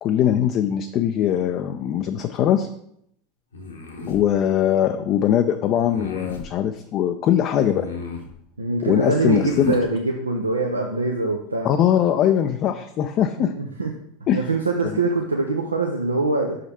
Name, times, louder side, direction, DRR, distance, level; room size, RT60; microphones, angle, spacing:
voice 1, 0.0-2.7 4.1-7.9 8.8-9.8 11.6-13.5 14.3-14.5 14.8-15.0, left 10 dB, 40° left, 7 dB, 0.4 m, -21 dB
sound 1, 3.5-4.2 5.8-6.5 7.6-8.3 9.2-9.9, left 3 dB, 70° left, 1.1 m, -34 dB
voice 2, 8.6-11.7 13.4-13.9 14.3-16.6, right 3 dB, 80° right, 2 dB, 0.5 m, -23 dB
5.7 x 5.0 x 4.2 m, 0.72 s
figure-of-eight pair, 80°, 0 cm